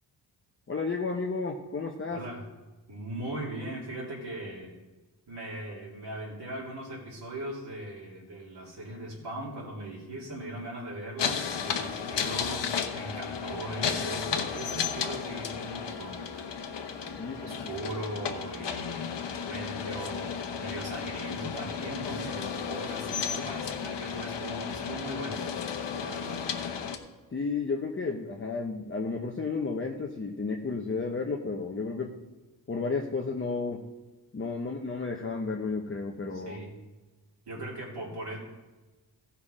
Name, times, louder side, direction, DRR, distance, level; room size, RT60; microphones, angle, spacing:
voice 1, 0.7-2.2 17.2-17.7 23.7-23.9 27.3-32.2 32.7-33.8 34.3-36.6, left 4 dB, 30° left, 1 dB, 0.8 m, -32 dB
voice 2, 2.1-2.5 2.9-4.7 5.3-16.2 17.4-25.5 26.0-26.5 36.3-36.7 37.5-38.4, right 1 dB, 70° right, -6 dB, 2.8 m, -39 dB
sound 1, 11.2-27.0, left 7 dB, 90° left, 1.0 m, -34 dB
15.0 x 5.7 x 4.9 m, 1.2 s
wide cardioid pair, 115°, 41 cm